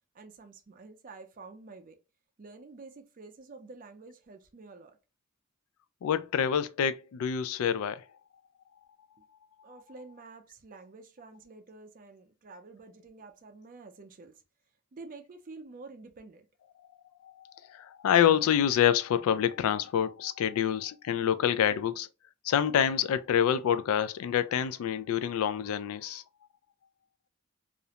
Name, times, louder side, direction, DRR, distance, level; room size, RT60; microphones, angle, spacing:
voice 1, 0.1-2.0 2.4-5.0 9.6-14.4 14.9-16.5, right 3 dB, 40° right, 0.4 m, -49 dB
voice 2, 6.0-8.0 17.2-17.3 17.7-22.1 22.4-26.2, left 9 dB, 80° left, 0.3 m, -27 dB
2.4 x 2.1 x 2.8 m
head